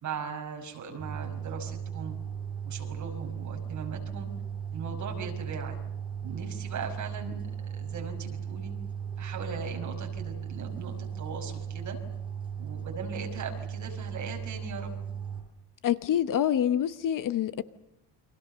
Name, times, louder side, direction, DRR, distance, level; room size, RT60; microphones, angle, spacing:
voice 1, 0.0-2.2 2.6-4.3 4.7-5.8 6.2-8.7 9.2-12.0 12.6-14.9, right 5 dB, 40° right, 5.6 m, -39 dB
sound 1, 1.0-15.4, right 8 dB, 10° right, 6.2 m, -37 dB
voice 2, 15.8-17.6, left 10 dB, 45° left, 1.0 m, -26 dB
29.5 x 25.5 x 6.8 m
cardioid pair, 160°, 45 cm